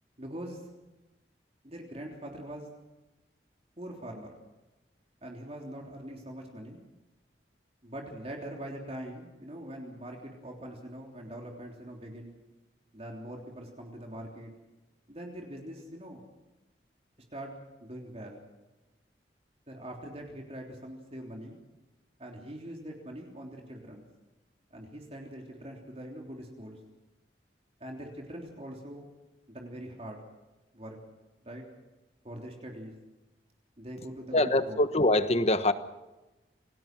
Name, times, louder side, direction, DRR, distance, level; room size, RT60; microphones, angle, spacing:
voice 1, 0.2-0.6 1.6-2.7 3.8-4.3 5.2-6.8 7.8-12.3 12.9-14.5 15.1-16.2 17.3-17.5 17.8-18.4 19.7-21.6 22.2-24.0 24.7-26.8 27.8-29.0 29.5-30.2 30.7-31.0 31.4-31.6 32.2-32.9 33.8-34.8, right 1 dB, 35° right, 1 dB, 3.4 m, -43 dB
voice 2, 34.3-35.7, left 2 dB, 35° left, 11 dB, 1.2 m, -24 dB
27.5 x 19.5 x 6.1 m, 1.0 s
head